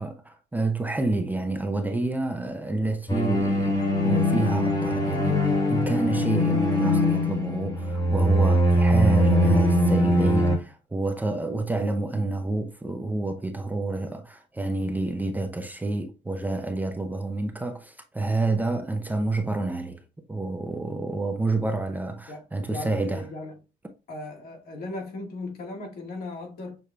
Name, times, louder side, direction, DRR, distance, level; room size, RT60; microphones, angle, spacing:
voice 1, 0.0-20.0 20.3-23.3, right 2 dB, 10° right, 0.6 m, -28 dB
sound 1, 3.1-10.6, equal, 20° left, 1.4 m, -22 dB
voice 2, 22.3-23.6 24.1-26.8, left 2 dB, 65° left, 1.9 m, -37 dB
6.7 x 2.9 x 2.3 m
cardioid pair, 110°, 17 cm